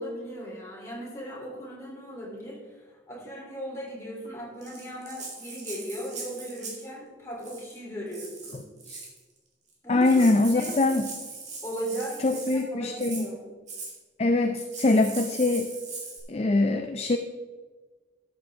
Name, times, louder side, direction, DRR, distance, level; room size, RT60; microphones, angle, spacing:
voice 1, 0.0-8.6 9.8-10.2 10.5-10.7 11.6-13.5, right 1 dB, 15° left, -5 dB, 3.3 m, -37 dB
Rattle (instrument), 4.6-6.9 7.4-7.8 8.1-9.2 9.7-9.8 10.0-12.6 13.0-13.3 13.7-13.9 14.6-16.2, right 4 dB, 40° right, 2.2 m, -40 dB
voice 2, 9.9-11.0 12.2-13.3 14.2-15.7 16.3-17.2, left 2 dB, 35° left, 6 dB, 0.4 m, -23 dB
13.0 x 7.4 x 3.6 m, 1.3 s
head